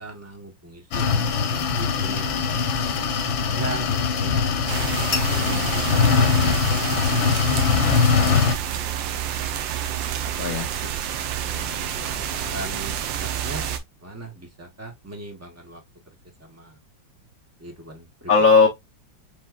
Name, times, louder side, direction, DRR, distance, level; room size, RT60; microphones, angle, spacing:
voice 1, 0.0-2.3 3.6-4.5 5.3-5.9 6.2-7.1 11.7-13.7 14.0-15.8 16.4-16.8 17.6-18.6, right 1 dB, 20° right, 0.3 m, -38 dB
sound 1, 0.9-8.5, left 5 dB, 90° left, 1.7 m, -22 dB
sound 2, 4.7-13.8, right 10 dB, 80° right, 1.4 m, -29 dB
voice 2, 11.4-11.9 18.3-18.7, left 4 dB, 55° left, 1.1 m, -18 dB
5.3 x 3.0 x 2.3 m
omnidirectional pair, 2.1 m